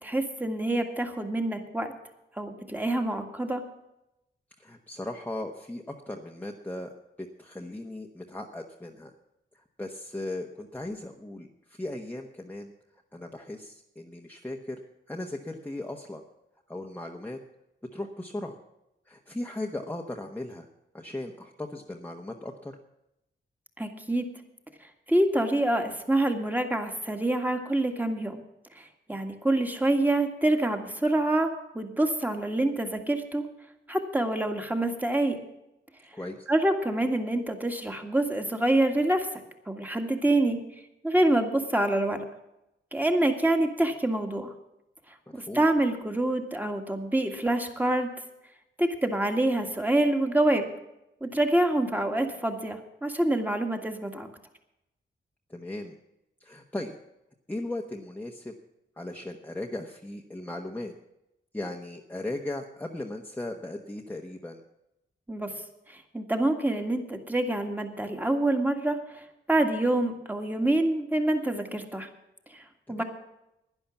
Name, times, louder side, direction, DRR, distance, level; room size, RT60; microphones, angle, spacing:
voice 1, 0.0-1.9 2.4-3.6 23.8-24.3 25.1-28.4 28.8-33.5 33.9-35.4 36.5-39.3 39.7-40.6 41.0-42.2 42.9-44.5 45.3-48.1 48.8-50.7 51.2-54.3 65.3-65.5 65.9-69.2 69.5-72.1 72.5-72.6 72.9-73.0, right 1 dB, 10° right, 4 dB, 1.8 m, -26 dB
voice 2, 4.6-9.1 9.5-12.7 13.1-14.8 15.1-16.2 16.7-17.4 17.9-18.6 19.1-20.7 20.9-22.8 36.1-36.5 45.3-45.7 55.5-55.9 56.4-57.0 57.5-58.5 59.0-60.9 61.5-64.6 72.9-73.0, left 1 dB, 10° left, 1 dB, 1.1 m, -37 dB
11.5 x 10.5 x 7.1 m, 0.88 s
cardioid pair, 75°, 20 cm